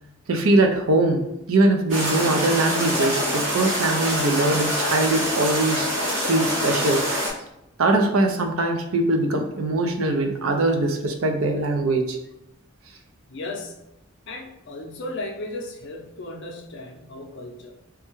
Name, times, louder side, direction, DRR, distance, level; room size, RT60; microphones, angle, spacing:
voice 1, 0.3-5.9 6.2-7.0 7.8-12.2, right 2 dB, 90° right, 5 dB, 0.5 m, -22 dB
sound 1, 1.9-7.3, equal, 70° right, 1.2 m, -25 dB
voice 2, 13.3-13.8 14.3-17.8, left 2 dB, 60° left, 2 dB, 0.5 m, -35 dB
3.4 x 2.2 x 3.0 m, 0.85 s
head